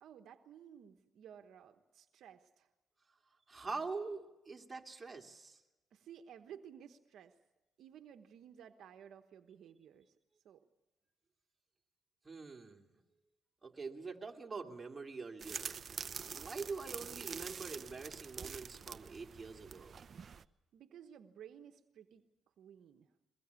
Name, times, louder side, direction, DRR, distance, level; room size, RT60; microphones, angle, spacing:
voice 1, 0.0-2.7 5.9-7.4 7.8-10.1 10.4-10.6 20.7-22.2 22.6-23.1, right 9 dB, 75° right, 7 dB, 1.2 m, -55 dB
voice 2, 3.5-5.6 12.2-12.9 13.6-15.8 16.0-19.9, right 4 dB, 25° right, 2 dB, 2.9 m, -45 dB
sound 1, 15.4-20.4, right 6 dB, 45° right, 0.7 m, -46 dB
22.5 x 21.5 x 8.4 m, 1.0 s
cardioid pair, 90°, 0 cm